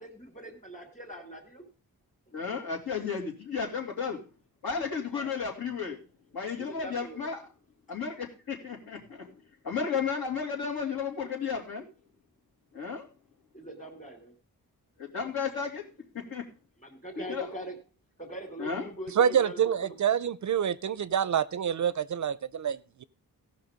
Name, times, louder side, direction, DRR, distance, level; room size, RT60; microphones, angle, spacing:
voice 1, 0.0-1.6 2.3-2.4 5.1-5.4 5.7-5.8 6.6-7.3 13.5-14.3 16.8-17.8 18.2-20.0, right 1 dB, 20° left, 5 dB, 2.5 m, -42 dB
voice 2, 2.3-4.2 4.6-6.0 6.3-7.4 7.9-9.3 9.6-11.8 12.7-13.0 15.0-15.8 16.3-16.4 17.2-17.5 18.6-18.8, left 6 dB, 75° left, 0 dB, 2.9 m, -33 dB
voice 3, 19.2-23.0, right 8 dB, 50° right, 18 dB, 0.4 m, -27 dB
16.5 x 5.8 x 5.1 m, 0.33 s
wide cardioid pair, 175°, 37 cm